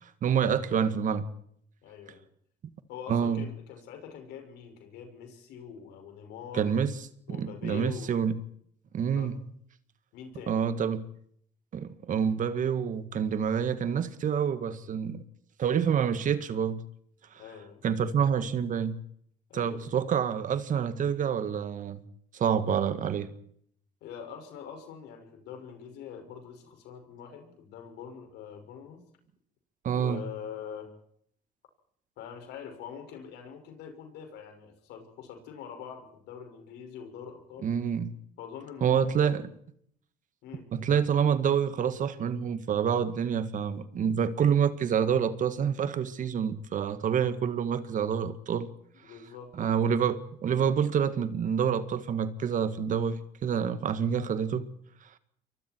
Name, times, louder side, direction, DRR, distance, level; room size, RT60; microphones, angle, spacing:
voice 1, 0.2-1.3 3.1-3.4 6.5-6.9 7.3-8.4 8.9-9.4 10.5-11.1 11.7-15.2 15.6-16.8 17.8-19.0 19.5-22.0 22.3-23.3 29.8-30.2 37.6-38.1 38.8-39.5 40.7-48.7 49.6-54.7, right 7 dB, 50° right, 1.9 m, -27 dB
voice 2, 1.8-2.3 2.9-6.7 7.3-8.1 9.1-9.3 10.1-10.6 17.4-17.8 19.5-19.9 24.0-29.0 29.9-30.9 32.2-37.7 38.4-39.4 40.4-40.7 49.0-49.9, left 8 dB, 85° left, 6.2 m, -44 dB
28.0 x 23.5 x 4.7 m
cardioid pair, 110°, 17 cm